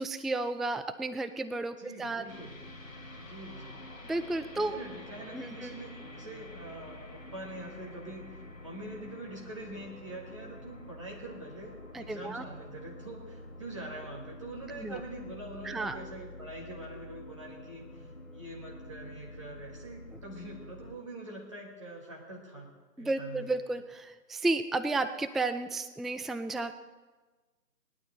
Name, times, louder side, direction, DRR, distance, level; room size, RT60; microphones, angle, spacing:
voice 1, 0.0-2.2 4.1-4.8 5.3-5.7 11.9-12.4 14.8-15.0 15.6-16.0 23.0-26.7, right 2 dB, ahead, 10 dB, 0.4 m, -32 dB
voice 2, 1.8-2.5 3.2-3.8 4.5-23.6, right 1 dB, 20° right, -3 dB, 1.7 m, -44 dB
sound 1, 2.3-21.0, left 1 dB, 55° left, 1.5 m, -48 dB
19.0 x 11.5 x 4.2 m, 1.3 s
figure-of-eight pair, 165°, 49 cm